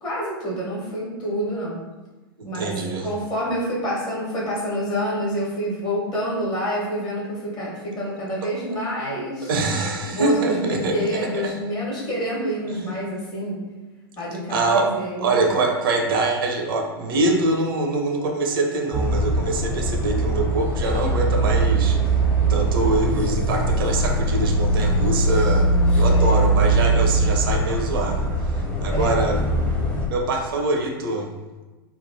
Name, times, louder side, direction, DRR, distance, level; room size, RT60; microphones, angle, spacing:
voice 1, 0.0-1.8 2.4-9.6 10.0-13.6 14.2-15.4 25.5-26.5 28.9-29.4, equal, 35° left, -5 dB, 1.2 m, -28 dB
voice 2, 2.5-3.1 9.5-11.1 11.3-11.5 12.7-12.9 14.5-14.9 15.2-22.0 22.5-25.7 25.9-29.4 30.1-31.3, right 2 dB, 65° right, 2 dB, 0.5 m, -24 dB
sound 1, 18.9-30.1, right 2 dB, 10° left, 0.6 m, -21 dB
2.9 x 2.2 x 2.6 m, 1.2 s
figure-of-eight pair, 95°, 13 cm